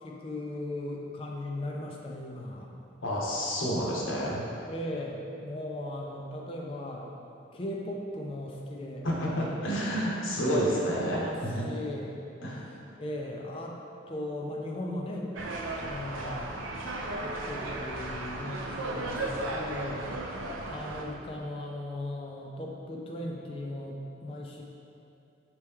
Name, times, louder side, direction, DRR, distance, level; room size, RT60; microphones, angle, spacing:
voice 1, 0.0-2.7 4.7-7.1 7.5-9.1 11.1-12.2 13.0-13.8 14.1-15.5 15.8-16.6 17.1-20.0 20.7-24.6, left 1 dB, 30° left, -1 dB, 0.4 m, -37 dB
voice 2, 3.0-4.4 9.0-11.6 12.4-12.7, equal, 85° left, -4 dB, 0.8 m, -29 dB
sound 1, 15.4-21.0, right 2 dB, 85° right, 0.4 m, -35 dB
4.4 x 3.0 x 3.5 m, 2.7 s
head